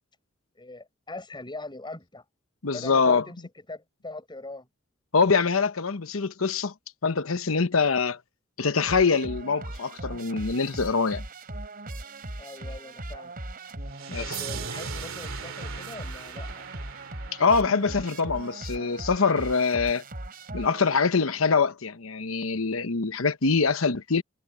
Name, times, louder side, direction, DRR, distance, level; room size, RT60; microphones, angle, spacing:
voice 1, 0.5-2.2 2.7-3.4 3.7-4.7 12.4-13.3 14.2-16.7, left 2 dB, 20° left, 7.8 m, -41 dB
voice 2, 2.6-3.2 5.1-6.7 7.0-8.2 8.6-11.2 14.1-14.4 17.4-20.0 20.5-24.2, left 4 dB, 75° left, 1.0 m, -24 dB
sound 1, 8.9-21.3, right 1 dB, 45° right, 4.0 m, -39 dB
sound 2, 13.9-18.9, right 6 dB, 90° right, 2.4 m, -40 dB
head